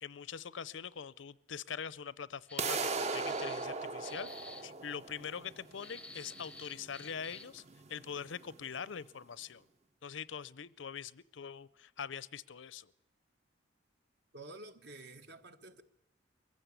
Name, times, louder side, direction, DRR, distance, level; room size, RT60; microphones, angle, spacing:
voice 1, 0.0-4.3 4.6-7.6 7.9-9.6 10.0-12.9, left 7 dB, 80° left, 0.6 m, -43 dB
sound 1, 2.5-3.7 4.0-4.6 5.7-7.6, left 2 dB, 5° left, 0.6 m, -51 dB
sound 2, 2.6-8.6, right 4 dB, 35° right, 0.8 m, -39 dB
voice 2, 14.3-15.8, right 2 dB, 60° right, 1.5 m, -50 dB
22.5 x 15.0 x 8.3 m
head